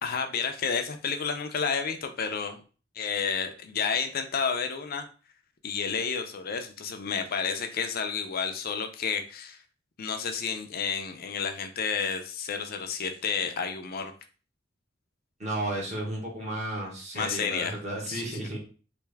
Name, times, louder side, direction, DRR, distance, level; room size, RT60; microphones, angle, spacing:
voice 1, 0.0-2.6 3.0-5.1 5.6-9.6 10.0-14.1 17.1-17.7 18.1-18.5, left 6 dB, 50° left, 6 dB, 0.5 m, -31 dB
voice 2, 15.4-18.6, right 1 dB, 35° right, -3 dB, 1.3 m, -33 dB
3.3 x 2.6 x 3.3 m, 0.37 s
head